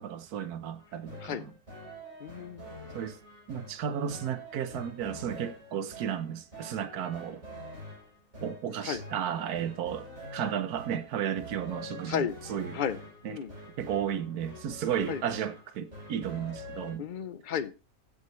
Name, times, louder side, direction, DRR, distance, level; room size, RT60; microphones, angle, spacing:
voice 1, 0.0-1.5 2.9-3.2 3.5-7.4 8.4-10.1 10.3-12.8 13.2-13.4 13.8-17.0, right 9 dB, 80° right, 1.4 m, -33 dB
sound 1, 0.8-16.9, equal, 50° right, 7.3 m, -46 dB
voice 2, 2.2-2.7 8.8-9.0 12.1-12.4 12.7-13.0 13.3-13.5 15.1-15.2 17.0-17.7, left 8 dB, 45° left, 0.6 m, -33 dB
15.5 x 7.4 x 3.1 m
omnidirectional pair, 1.6 m